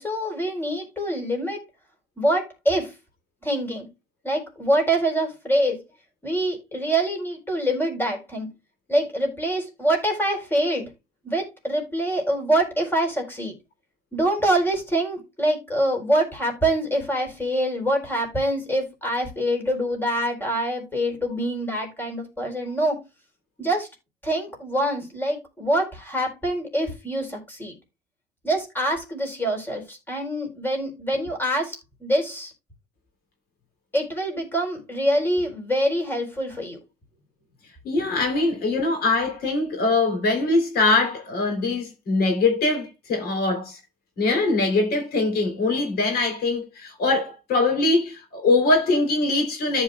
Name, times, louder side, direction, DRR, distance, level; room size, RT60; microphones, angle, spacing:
voice 1, 0.0-1.6 2.2-2.9 3.4-3.9 4.2-5.8 6.2-8.5 8.9-10.9 11.2-13.5 14.1-23.0 23.6-23.9 24.2-27.7 28.4-32.5 33.9-36.8, right 1 dB, 10° left, 4.1 m, -25 dB
voice 2, 37.8-43.8 44.2-49.8, left 3 dB, 65° left, 3.4 m, -22 dB
14.0 x 5.5 x 2.3 m
cardioid pair, 110°, 17 cm